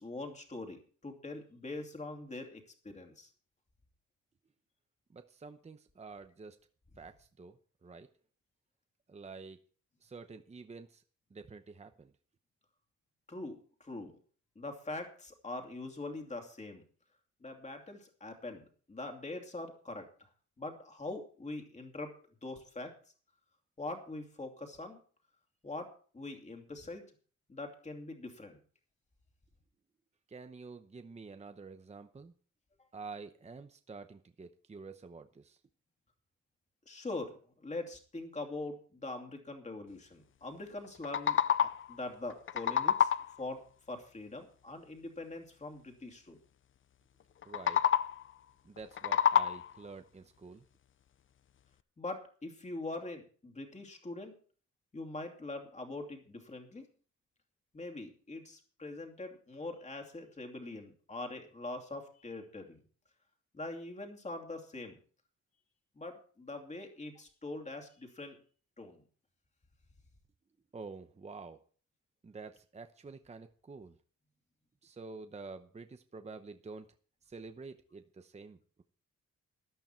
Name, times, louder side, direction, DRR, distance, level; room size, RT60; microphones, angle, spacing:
voice 1, 0.0-3.3 13.3-14.1 14.6-16.8 17.4-20.3 20.6-22.1 22.4-22.9 23.8-25.0 25.6-25.9 26.1-27.0 27.5-28.6 36.9-43.1 43.4-43.6 43.9-46.4 52.0-54.3 54.9-56.9 57.7-62.8 63.5-65.0 66.0-68.4 68.8-69.0, left 2 dB, 25° left, 3 dB, 2.7 m, -43 dB
voice 2, 5.1-6.6 7.0-8.1 9.1-9.6 10.0-11.0 11.3-12.1 30.3-32.3 32.9-35.6 47.4-47.8 48.6-50.6 70.7-71.6 72.2-73.9 74.8-76.9 77.3-78.8, right 4 dB, 20° right, 8 dB, 0.8 m, -48 dB
sound 1, 40.8-42.0 42.3-43.4 47.4-48.3 48.8-49.9, left 8 dB, 40° left, 0.5 m, -29 dB
13.5 x 12.0 x 4.5 m, 0.43 s
wide cardioid pair, 150°, 30 cm